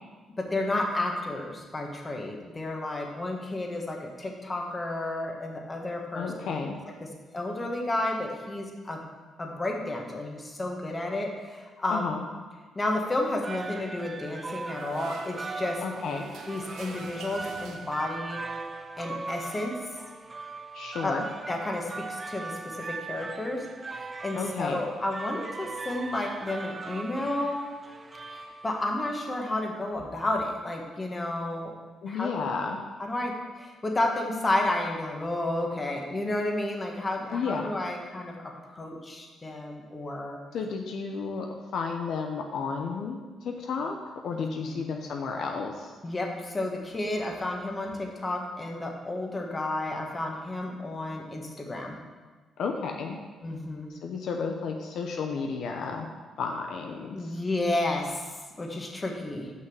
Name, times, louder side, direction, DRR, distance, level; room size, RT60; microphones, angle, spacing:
voice 1, 0.4-6.5 7.0-7.1 7.3-9.0 9.4-12.1 12.7-15.8 16.5-18.4 19.0-19.7 21.0-21.2 21.5-23.6 23.9-27.6 28.3-31.7 32.1-32.5 33.0-38.4 38.7-40.4 44.3-44.8 46.0-52.0 53.4-53.9 57.1-58.3 58.6-59.5, left 2 dB, 25° left, 1 dB, 1.5 m, -31 dB
voice 2, 6.1-6.8 11.9-12.2 15.8-16.3 20.7-21.2 24.3-24.8 32.0-32.8 37.3-37.7 40.5-41.5 41.7-44.0 44.2-45.9 52.6-53.2 53.9-56.1 56.4-57.4, left 5 dB, 70° left, 2 dB, 0.8 m, -32 dB
sound 1, 13.2-29.1, right 3 dB, 30° right, 0.5 m, -39 dB
sound 2, 14.4-18.3, right 3 dB, 80° right, 1.2 m, -44 dB
6.3 x 5.9 x 7.1 m, 1.4 s
cardioid pair, 90°, 0 cm